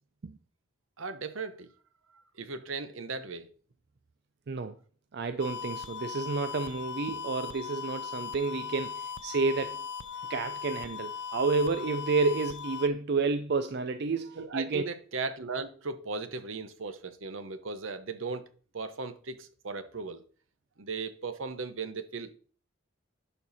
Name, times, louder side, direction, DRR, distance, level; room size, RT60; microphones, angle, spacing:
voice 1, 1.0-1.7 2.3-3.5 14.4-18.5 18.7-20.2 20.8-22.4, right 4 dB, 75° right, 0.9 m, -37 dB
voice 2, 4.5-4.8 5.1-14.8, right 4 dB, 50° right, 0.4 m, -30 dB
sound 1, 5.4-12.9, left 6 dB, 55° left, 0.5 m, -39 dB
11.0 x 4.5 x 4.1 m
head